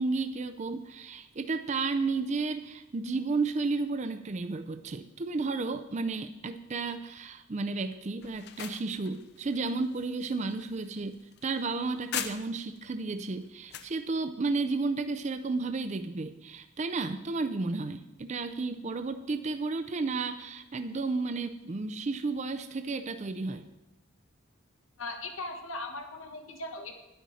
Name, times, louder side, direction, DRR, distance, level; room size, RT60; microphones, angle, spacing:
voice 1, 0.0-23.6, right 3 dB, 35° right, 9 dB, 0.4 m, -32 dB
sound 1, 8.2-12.8 13.2-14.0, left 9 dB, 50° left, 0.6 m, -41 dB
voice 2, 25.0-26.9, left 2 dB, 75° left, 4 dB, 1.4 m, -38 dB
10.5 x 10.0 x 4.1 m, 0.96 s
head